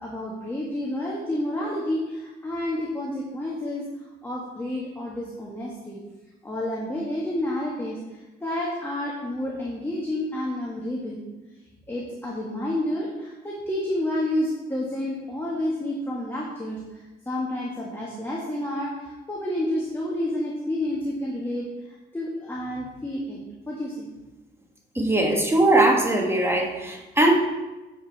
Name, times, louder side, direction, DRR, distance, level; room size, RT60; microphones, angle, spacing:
voice 1, 0.0-3.8 4.2-6.0 6.4-11.2 11.9-23.4 23.7-24.1, left 1 dB, 10° left, -4 dB, 1.5 m, -30 dB
voice 2, 24.9-27.3, right 2 dB, 10° right, 1 dB, 1.3 m, -20 dB
9.4 x 5.1 x 4.1 m, 1.1 s
cardioid pair, 90°, 20 cm